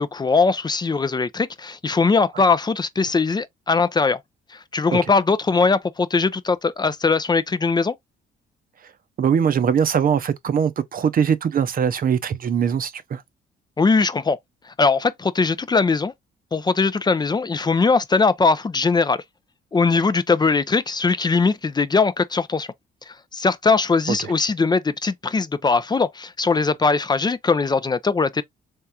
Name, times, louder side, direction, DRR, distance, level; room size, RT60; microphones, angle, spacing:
voice 1, 0.0-4.2 4.5-7.9 13.8-14.4 14.8-16.1 16.5-19.2 19.7-22.7 23.1-28.4, left 4 dB, 20° left, 0.4 m, -20 dB
voice 2, 9.2-13.2 24.1-24.3, right 7 dB, 45° right, 0.6 m, -21 dB
3.6 x 3.4 x 2.7 m
cardioid pair, 90°, 20 cm